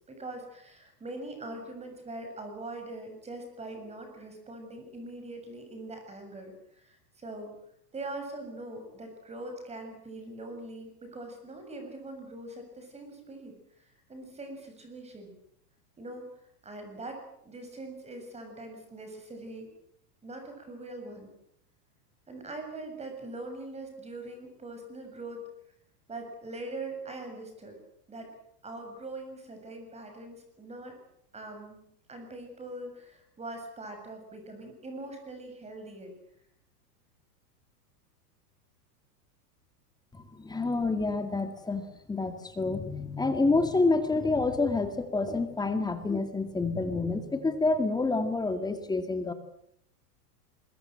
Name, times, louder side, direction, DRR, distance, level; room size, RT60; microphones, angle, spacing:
voice 1, 0.1-7.6 7.9-13.5 14.1-15.3 16.0-16.3 16.6-19.7 20.2-21.3 22.3-25.4 26.1-27.8 28.1-28.3 28.6-31.0 31.3-36.2, right 2 dB, 15° right, 5 dB, 7.1 m, -42 dB
voice 2, 40.1-49.3, left 3 dB, 10° left, 8 dB, 2.3 m, -28 dB
24.5 x 22.5 x 7.8 m, 0.72 s
supercardioid pair, 145°, 47 cm